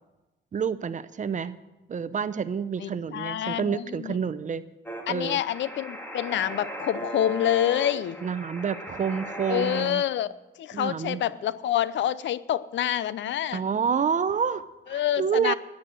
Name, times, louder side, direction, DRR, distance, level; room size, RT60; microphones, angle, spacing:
voice 1, 0.5-1.6 1.9-4.6 5.1-5.4 8.2-10.0 10.7-11.2 13.5-15.5, right 7 dB, 40° right, 14 dB, 0.7 m, -28 dB
voice 2, 2.8-4.2 5.1-8.2 9.5-10.3 10.6-13.6 14.9-15.5, left 11 dB, 70° left, 17 dB, 0.6 m, -27 dB
sound 1, 4.9-9.9, right 1 dB, 10° left, 2.5 m, -37 dB
13.0 x 9.7 x 7.8 m, 1.1 s
cardioid pair, 90°, 20 cm